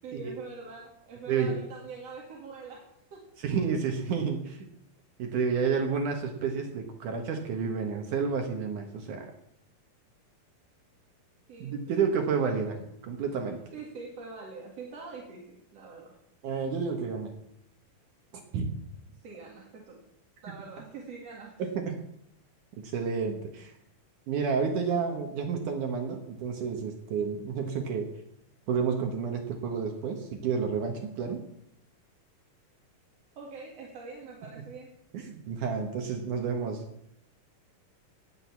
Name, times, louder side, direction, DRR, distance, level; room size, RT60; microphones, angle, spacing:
voice 1, 0.0-3.3 11.5-12.9 13.7-16.2 19.2-20.0 20.4-21.6 23.8-23.9 33.4-34.9, right 4 dB, 50° right, -2 dB, 2.7 m, -44 dB
voice 2, 1.3-1.6 3.4-4.7 5.2-9.3 11.6-12.7 13.1-13.6 16.4-17.3 18.5-18.7 22.8-23.7 24.3-28.1 28.7-31.4 35.1-36.8, right 6 dB, 65° right, 4 dB, 2.6 m, -30 dB
18.5 x 6.3 x 7.2 m, 0.76 s
omnidirectional pair, 4.2 m